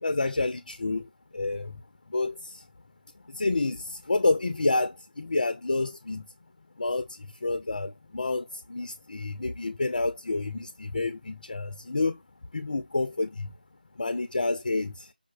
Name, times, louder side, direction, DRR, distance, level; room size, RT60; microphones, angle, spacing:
voice 1, 0.0-1.1 1.3-1.7 2.1-2.6 3.3-6.2 6.8-12.2 12.5-13.5 14.0-15.1, left 3 dB, 55° left, 0.3 m, -29 dB
5.1 x 2.0 x 2.3 m
figure-of-eight pair, 160°, 5 cm